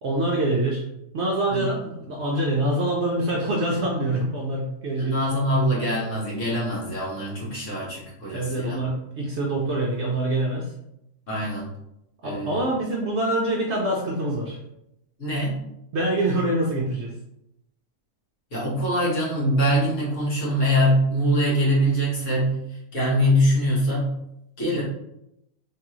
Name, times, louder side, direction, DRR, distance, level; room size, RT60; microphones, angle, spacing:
voice 1, 0.0-0.8 1.1-5.6 8.3-10.7 12.2-14.6 15.9-17.1, right 1 dB, 60° right, -1 dB, 0.7 m, -25 dB
voice 2, 5.0-8.8 11.3-11.7 12.2-12.7 15.2-15.6 18.5-22.6 22.9-24.1 24.6-24.8, equal, 55° left, -7 dB, 1.7 m, -23 dB
3.5 x 3.2 x 3.0 m, 0.82 s
omnidirectional pair, 1.6 m